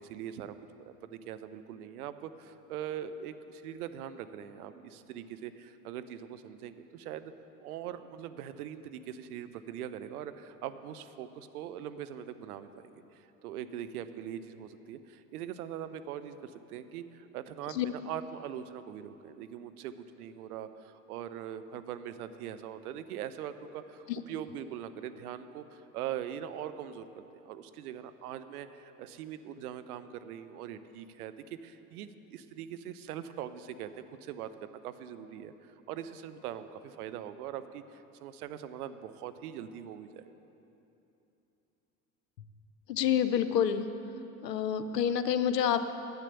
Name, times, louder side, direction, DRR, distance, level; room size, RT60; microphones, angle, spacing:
voice 1, 0.0-7.3 7.6-27.1 27.3-33.9 34.2-40.3, right 10 dB, 70° right, 11 dB, 0.7 m, -42 dB
voice 2, 42.9-43.9 44.4-45.9, left 9 dB, 85° left, 11 dB, 0.7 m, -28 dB
10.5 x 8.2 x 6.9 m, 3.0 s
figure-of-eight pair, 75°, 48 cm